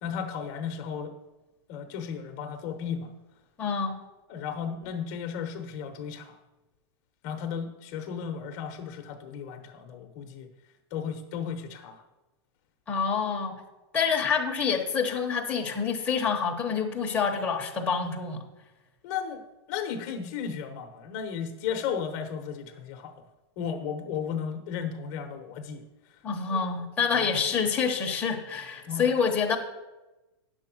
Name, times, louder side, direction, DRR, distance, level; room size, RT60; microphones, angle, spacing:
voice 1, 0.0-1.1 1.7-3.1 4.3-6.4 7.2-10.5 10.9-12.0 19.0-19.4 19.7-23.1 23.6-25.8 27.1-27.3 28.9-29.1, left 7 dB, 40° left, 5 dB, 0.9 m, -34 dB
voice 2, 3.6-3.9 12.9-13.6 13.9-18.4 26.2-29.6, left 6 dB, 10° left, 0 dB, 1.0 m, -27 dB
9.5 x 6.9 x 6.0 m, 1.1 s
supercardioid pair, 160°, 14 cm